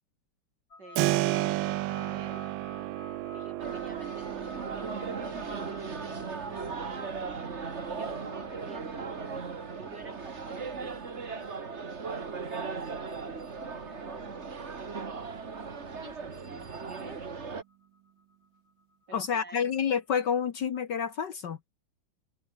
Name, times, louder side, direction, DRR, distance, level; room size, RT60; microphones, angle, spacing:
sound 1, 0.7-19.8, left 3 dB, 35° left, 4.2 m, -54 dB
voice 1, 0.8-2.5 3.3-7.5 7.9-9.2 9.8-11.5 12.3-14.7 15.9-17.3 19.1-19.7, right 3 dB, 50° right, 5.7 m, -50 dB
Keyboard (musical), 1.0-11.6, right 17 dB, 75° right, 1.2 m, -35 dB
sound 2, 3.6-17.6, right 5 dB, 35° right, 1.9 m, -38 dB
voice 2, 19.1-21.7, left 7 dB, 55° left, 1.7 m, -29 dB
omnidirectional pair, 2.4 m